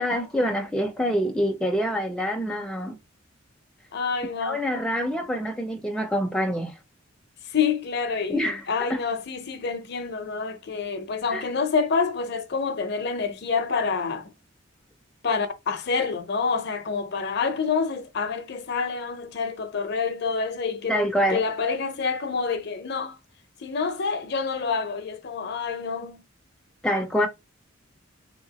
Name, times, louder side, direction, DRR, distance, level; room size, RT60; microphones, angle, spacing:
voice 1, 0.0-3.0 4.4-6.7 8.3-8.6 11.3-11.4 20.9-21.4 26.8-27.3, equal, 5° left, 0.4 m, -26 dB
voice 2, 3.9-4.7 7.4-14.3 15.2-21.0 21.3-23.2 23.6-26.3, left 5 dB, 55° left, 0.6 m, -27 dB
3.3 x 2.8 x 2.8 m
head